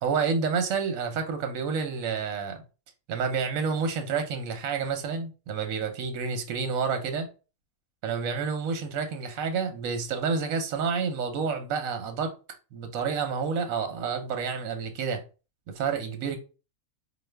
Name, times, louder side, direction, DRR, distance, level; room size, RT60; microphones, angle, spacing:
voice 1, 0.0-2.6 3.1-7.3 8.0-12.3 12.7-15.2 15.7-16.4, right 5 dB, 80° right, 1.1 m, -29 dB
4.9 x 2.2 x 3.2 m
omnidirectional pair, 1.4 m